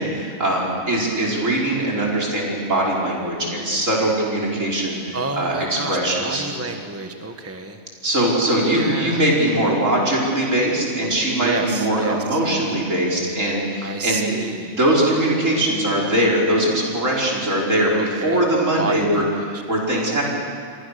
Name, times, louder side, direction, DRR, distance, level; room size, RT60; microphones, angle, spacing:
voice 1, 0.0-6.4 8.0-14.3 14.8-19.2 19.5-20.2, right 1 dB, 70° right, -2 dB, 5.6 m, -21 dB
voice 2, 5.1-7.8 8.7-9.3 11.4-12.4 13.8-14.8 17.9-18.4 18.8-19.6, right 2 dB, 10° right, 5 dB, 1.3 m, -30 dB
29.5 x 23.0 x 6.8 m, 2.2 s
omnidirectional pair, 1.4 m